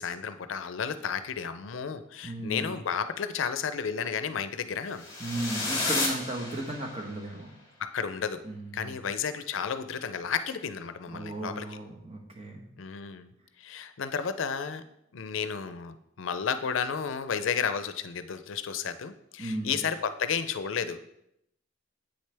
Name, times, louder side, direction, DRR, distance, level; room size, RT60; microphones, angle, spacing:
voice 1, 0.0-5.1 7.8-8.4 8.7-11.8 12.8-13.3 13.6-14.8 15.1-21.1, left 6 dB, 80° left, 11 dB, 0.5 m, -32 dB
voice 2, 2.2-2.7 5.2-7.5 8.4-9.0 11.1-12.6 19.4-19.8, right 1 dB, 30° right, 1 dB, 1.2 m, -35 dB
sound 1, 4.9-7.1, left 3 dB, 15° left, 1.9 m, -32 dB
8.2 x 6.4 x 3.4 m, 0.79 s
head